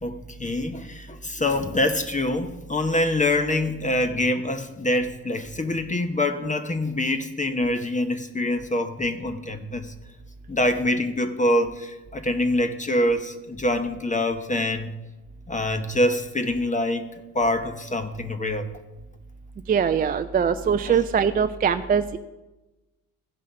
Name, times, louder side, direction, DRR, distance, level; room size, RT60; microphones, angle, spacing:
voice 1, 0.0-9.9 10.5-14.9 15.5-17.1 17.3-18.7 20.9-21.0, left 1 dB, 20° left, 9 dB, 0.9 m, -25 dB
voice 2, 19.7-22.2, right 7 dB, 25° right, 9 dB, 0.4 m, -22 dB
15.0 x 5.5 x 5.3 m, 1.1 s
hypercardioid pair, 70°, 40 cm